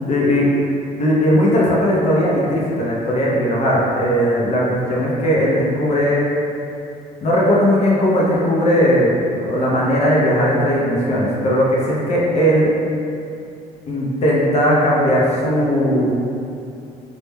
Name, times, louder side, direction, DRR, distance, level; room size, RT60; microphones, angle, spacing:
voice 1, 0.1-0.5 1.0-6.2 7.2-12.7 13.9-16.1, equal, 40° left, -5 dB, 0.4 m, -17 dB
2.1 x 2.0 x 3.1 m, 2.6 s
cardioid pair, 110°, 17 cm